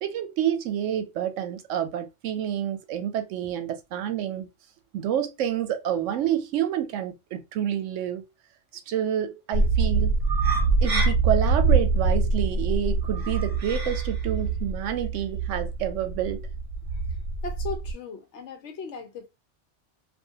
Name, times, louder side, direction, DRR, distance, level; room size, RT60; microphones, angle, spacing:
voice 1, 0.0-4.5 4.9-8.2 8.9-10.1 10.8-16.5, right 10 dB, 85° right, 0.9 m, -28 dB
sound 1, 9.5-17.9, right 3 dB, 55° right, 0.8 m, -24 dB
voice 2, 17.4-19.3, left 5 dB, 70° left, 0.9 m, -37 dB
2.4 x 2.4 x 2.7 m
omnidirectional pair, 1.2 m